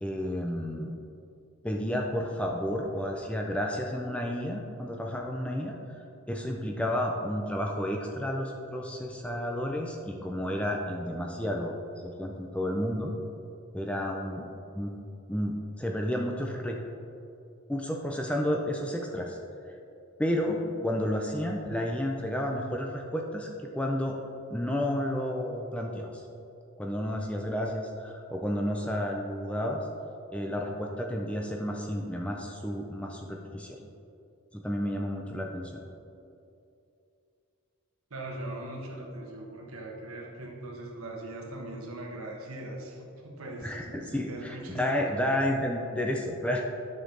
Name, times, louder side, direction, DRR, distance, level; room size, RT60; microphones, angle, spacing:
voice 1, 0.0-0.9 1.6-5.7 6.3-11.7 12.0-13.1 13.7-14.5 14.7-14.9 15.3-16.8 17.7-19.4 20.2-23.5 23.7-24.2 24.5-26.1 26.8-29.8 30.3-33.8 34.5-35.8 43.6-46.6, equal, 5° left, 0 dB, 0.5 m, -31 dB
voice 2, 38.1-45.2, right 1 dB, 75° right, 0 dB, 1.3 m, -40 dB
9.6 x 6.5 x 3.9 m, 2.6 s
head